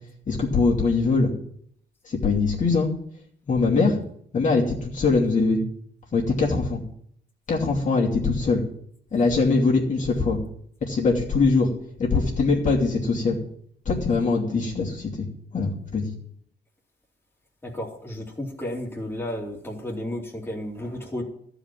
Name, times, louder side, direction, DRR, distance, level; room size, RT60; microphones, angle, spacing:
voice 1, 0.3-1.3 2.0-2.9 3.5-4.0 4.3-5.6 6.1-6.8 7.5-8.6 9.1-10.4 10.8-11.7 12.0-13.4 13.8-15.3 15.5-16.1, left 4 dB, 45° left, -3 dB, 2.7 m, -22 dB
voice 2, 17.6-21.2, left 1 dB, 15° left, -2 dB, 2.6 m, -33 dB
13.5 x 5.1 x 9.0 m, 0.66 s
cardioid pair, 120°, 17 cm